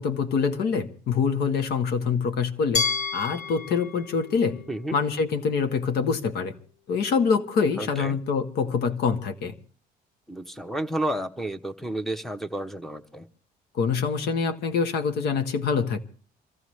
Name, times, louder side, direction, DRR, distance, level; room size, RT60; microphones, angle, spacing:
voice 1, 0.0-2.9 3.1-4.6 4.9-6.5 6.9-9.5 13.7-16.0, left 5 dB, 70° left, 1.3 m, -25 dB
Glass, 2.7-5.7, left 5 dB, 45° left, 0.9 m, -31 dB
voice 2, 7.8-8.1 10.3-13.3, right 1 dB, ahead, 0.8 m, -31 dB
25.5 x 14.0 x 3.2 m
cardioid pair, 110°, 17 cm